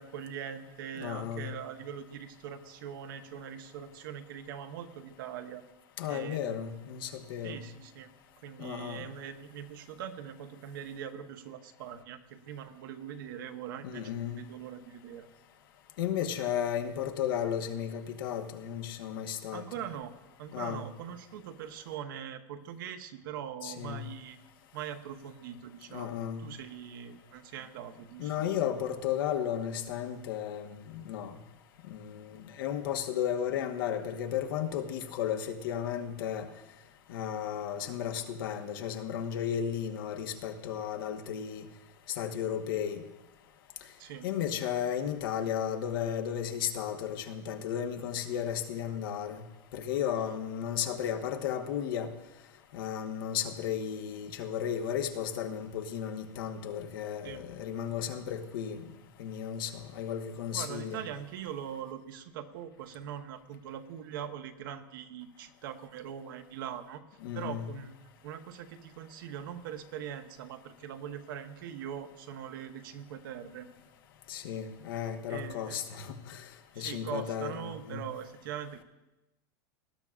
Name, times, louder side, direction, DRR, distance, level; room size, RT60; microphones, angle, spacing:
voice 1, 0.0-5.6 6.1-6.6 7.4-8.1 8.4-15.3 19.5-20.1 20.4-24.4 24.7-28.3 44.0-44.3 57.2-57.4 60.5-67.0 67.3-68.0 68.2-73.7 75.3-75.8 76.7-78.8, right 9 dB, 75° right, 7 dB, 1.1 m, -42 dB
voice 2, 1.0-1.5 6.0-7.6 8.6-9.1 13.8-14.4 16.0-19.6 20.5-20.9 23.6-24.1 25.9-26.4 28.2-31.4 31.9-36.5 37.1-41.7 42.1-43.0 44.2-49.4 49.7-52.1 52.7-58.9 59.2-61.0 67.2-67.7 74.3-76.4 76.8-78.0, left 9 dB, 80° left, 5 dB, 1.2 m, -34 dB
19.0 x 12.0 x 2.5 m, 1.0 s
supercardioid pair, 145°, 11 cm